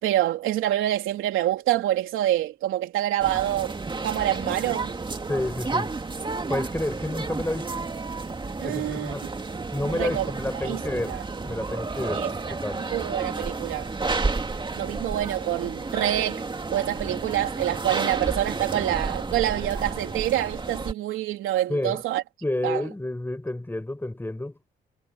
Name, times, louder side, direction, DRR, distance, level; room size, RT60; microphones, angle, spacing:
voice 1, 0.0-3.8 4.0-4.9 8.6-9.1 9.9-10.3 10.6-11.2 12.1-12.6 12.9-13.9 14.7-16.4 16.7-22.2 22.6-22.8, right 13 dB, 90° right, 3.5 m, -26 dB
sound 1, 3.2-20.9, right 3 dB, 25° right, 2.2 m, -31 dB
voice 2, 5.3-5.9 6.5-7.9 8.6-9.3 9.7-11.2 11.4-12.8 21.7-22.0 22.4-24.6, left 1 dB, 10° left, 6.0 m, -30 dB
cardioid pair, 90°, 20 cm